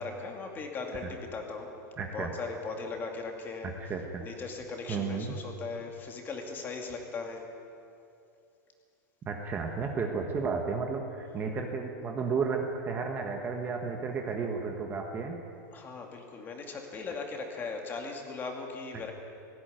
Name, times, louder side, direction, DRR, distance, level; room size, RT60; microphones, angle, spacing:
voice 1, 0.0-1.7 2.1-3.7 4.2-7.5 15.7-19.1, left 4 dB, 20° left, 2 dB, 2.5 m, -38 dB
voice 2, 2.0-2.3 3.8-4.2 4.9-5.4 9.3-15.4, right 5 dB, 20° right, 3 dB, 1.5 m, -33 dB
17.5 x 16.0 x 9.4 m, 2.5 s
supercardioid pair, 155°, 10 cm